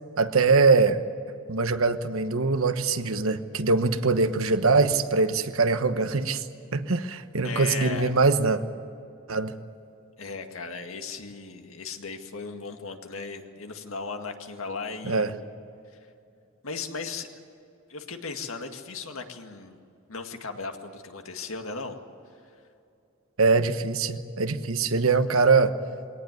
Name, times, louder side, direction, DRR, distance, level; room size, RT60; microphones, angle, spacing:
voice 1, 0.2-1.0 1.3-6.4 6.7-8.6 9.3-9.5 15.0-15.3 23.4-25.8, right 4 dB, 75° right, 10 dB, 1.1 m, -23 dB
voice 2, 7.4-8.1 10.2-15.4 16.6-17.3 17.9-19.8 20.1-22.0, left 4 dB, 75° left, 5 dB, 2.0 m, -36 dB
22.0 x 18.5 x 9.6 m, 2.6 s
head